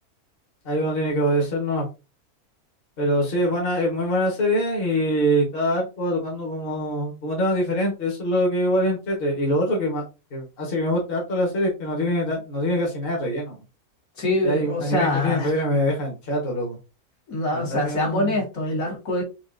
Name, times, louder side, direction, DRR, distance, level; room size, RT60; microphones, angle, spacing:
voice 1, 0.6-1.9 3.0-10.0 10.3-13.6 14.4-16.8 17.5-18.4, equal, 40° left, -2 dB, 1.4 m, -24 dB
voice 2, 14.2-15.5 17.3-19.2, left 1 dB, 65° left, -3 dB, 2.0 m, -24 dB
4.9 x 2.5 x 2.5 m, 0.28 s
omnidirectional pair, 1.6 m